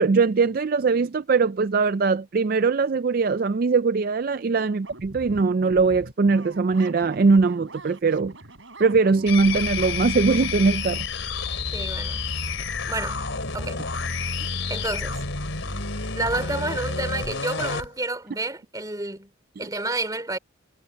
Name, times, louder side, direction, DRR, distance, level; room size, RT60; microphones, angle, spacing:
voice 1, 0.0-8.3 8.8-11.1, right 4 dB, 45° right, 0.4 m, -21 dB
sound 1, 4.8-10.7, right 2 dB, 70° right, 5.0 m, -43 dB
sound 2, 9.3-17.9, left 4 dB, 70° left, 3.7 m, -29 dB
voice 2, 11.7-12.2 12.9-13.2 13.5-13.8 14.7-15.2 16.1-19.3 19.6-20.4, right 2 dB, 20° right, 3.1 m, -30 dB
head